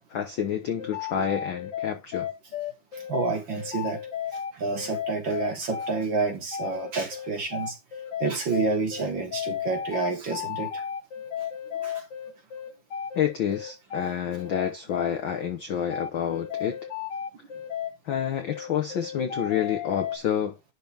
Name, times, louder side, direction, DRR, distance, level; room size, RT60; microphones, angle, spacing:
voice 1, 0.1-2.3 13.1-16.8 18.0-20.6, left 9 dB, 75° left, 1.1 m, -29 dB
sound 1, 0.8-20.2, left 9 dB, 50° left, 1.4 m, -34 dB
voice 2, 3.1-4.0 4.6-7.7 8.2-10.7, right 4 dB, 45° right, 1.9 m, -28 dB
11.0 x 4.3 x 3.4 m
omnidirectional pair, 3.5 m